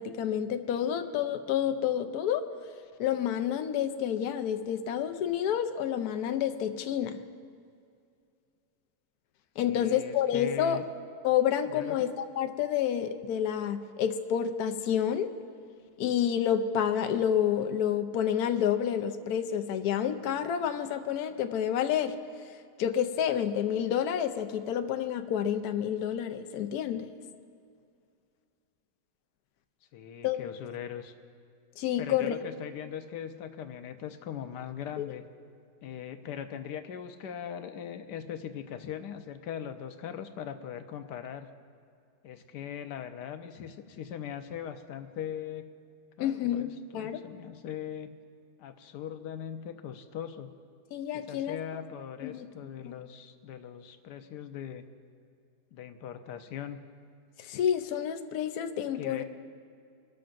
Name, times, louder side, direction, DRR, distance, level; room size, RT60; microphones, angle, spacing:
voice 1, 0.0-2.5 3.0-7.2 9.6-10.8 11.2-15.3 16.0-22.2 22.8-27.1 30.2-30.4 31.8-32.3 35.0-35.1 46.2-47.2 50.9-51.8 52.2-52.5 52.8-52.9 57.4-59.2, left 9 dB, 70° left, 8 dB, 1.2 m, -29 dB
voice 2, 9.6-10.8 11.7-12.0 29.9-31.1 32.0-35.2 35.8-41.5 42.2-45.7 46.2-48.1 48.6-50.5 51.1-54.8 55.7-56.8 59.0-59.2, left 9 dB, 85° left, 8 dB, 1.3 m, -40 dB
24.5 x 13.0 x 2.6 m, 2.3 s
omnidirectional pair, 1.8 m